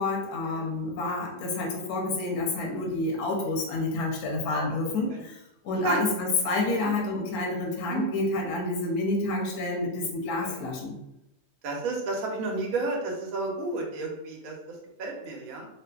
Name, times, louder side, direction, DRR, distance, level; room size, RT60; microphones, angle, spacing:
voice 1, 0.0-5.4 5.6-11.0, left 2 dB, 70° left, 0 dB, 1.0 m, -29 dB
voice 2, 4.8-5.2 5.8-6.0 6.7-6.9 7.9-8.1 10.4-10.6 11.6-15.7, right 3 dB, 65° right, 0 dB, 0.9 m, -32 dB
2.5 x 2.5 x 2.2 m, 0.84 s
omnidirectional pair, 1.8 m